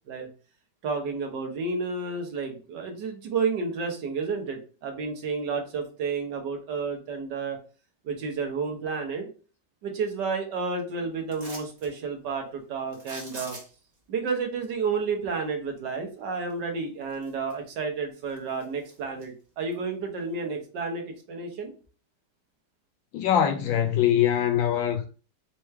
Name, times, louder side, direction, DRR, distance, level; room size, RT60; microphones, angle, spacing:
voice 1, 0.8-7.6 8.0-9.3 9.8-13.6 14.1-21.7, right 4 dB, 65° right, 1.6 m, -31 dB
sound 1, 11.3-11.9 12.9-13.9 16.5-16.6 17.1-17.8 18.1-19.3 19.7-19.8, right 2 dB, 25° right, 1.2 m, -43 dB
voice 2, 23.1-25.1, left 10 dB, 80° left, 1.3 m, -23 dB
4.6 x 3.1 x 3.1 m
omnidirectional pair, 2.2 m